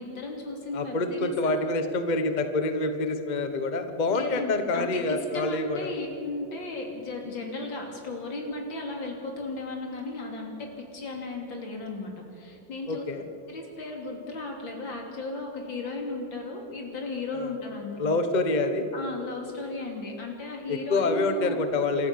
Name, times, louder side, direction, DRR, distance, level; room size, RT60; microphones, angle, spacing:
voice 1, 0.0-1.6 4.1-13.1 13.5-18.2 18.9-21.6, left 3 dB, 75° left, 1 dB, 3.6 m, -35 dB
voice 2, 0.7-5.9 12.9-13.2 17.3-17.5 18.0-18.9 20.7-22.1, left 2 dB, 30° left, 8 dB, 1.1 m, -27 dB
27.5 x 13.5 x 6.9 m, 2.8 s
omnidirectional pair, 2.1 m